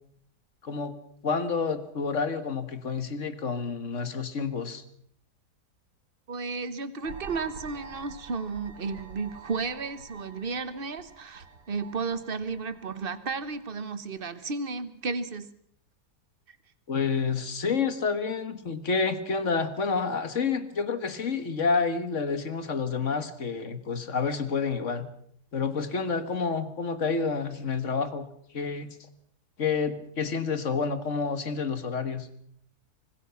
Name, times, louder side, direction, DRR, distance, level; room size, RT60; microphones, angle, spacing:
voice 1, 0.6-1.0 1.2-4.8 16.9-25.1 25.5-28.3 28.5-29.0 29.6-32.3, left 5 dB, 50° left, 11 dB, 1.9 m, -29 dB
voice 2, 6.3-15.5, right 4 dB, 35° right, 13 dB, 1.4 m, -33 dB
sound 1, 7.0-13.7, right 4 dB, 90° right, 3.3 m, -47 dB
25.0 x 20.0 x 5.9 m, 0.67 s
omnidirectional pair, 1.8 m